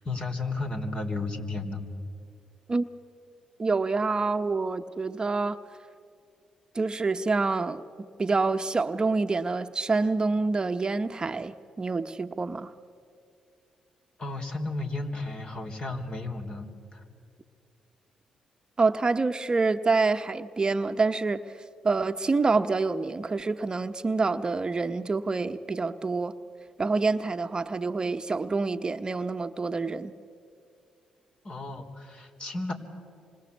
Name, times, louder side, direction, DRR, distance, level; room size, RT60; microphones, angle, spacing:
voice 1, 0.0-1.8 14.2-17.0 31.4-32.7, left 2 dB, 40° left, 5 dB, 3.7 m, -33 dB
voice 2, 3.6-5.6 6.7-12.7 18.8-21.6 21.8-26.4 26.8-30.1, right 3 dB, 30° right, 9 dB, 1.0 m, -27 dB
27.5 x 25.0 x 8.4 m, 2.5 s
supercardioid pair, 55°, 3 cm